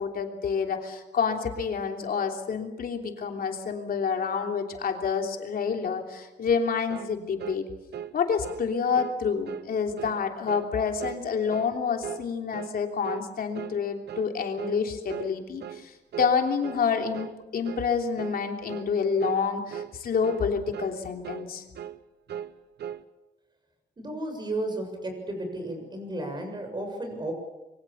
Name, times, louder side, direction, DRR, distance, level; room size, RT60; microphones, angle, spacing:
voice 1, 0.0-7.6 8.1-21.6, left 6 dB, 55° left, 3 dB, 3.2 m, -28 dB
sound 1, 6.9-7.1 7.4-7.6 7.9-8.1 8.4-8.7 8.9-9.2 9.5-9.7 10.0-10.2 10.5-10.7 11.0-11.2 11.5-11.7 12.0-12.3 12.5-12.8 13.0-13.3 13.5-13.8 14.1-14.3 14.6-14.8 15.1-15.3 15.6-15.8 16.1-16.3 16.6-16.8 17.1-17.4 17.6-17.9 18.2-18.4 18.7-18.9 19.2-19.4 19.7-19.9 20.2-20.5 20.7-21.0 21.2-21.5 21.7-22.0 22.3-23.0, right 9 dB, 70° right, 1.1 m, -38 dB
voice 2, 24.0-27.3, right 1 dB, 25° right, 5 dB, 6.9 m, -33 dB
26.5 x 23.5 x 7.1 m, 1.0 s
wide cardioid pair, 160°, 18 cm